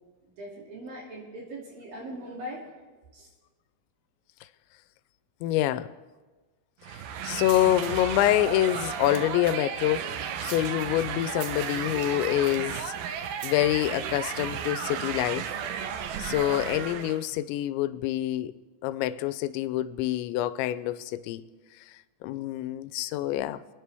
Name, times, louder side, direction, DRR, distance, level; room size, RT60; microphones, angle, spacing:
voice 1, 0.4-2.9 3.1-3.3, equal, 55° right, 4.2 m, -40 dB
voice 2, 5.4-5.9 6.9-12.9 13.4-15.5 16.2-18.5 18.8-21.4 22.2-23.6, left 13 dB, 90° left, 2.9 m, -26 dB
sound 1, 6.8-17.2, right 8 dB, 80° right, 2.3 m, -34 dB
26.5 x 9.5 x 3.4 m
omnidirectional pair, 5.1 m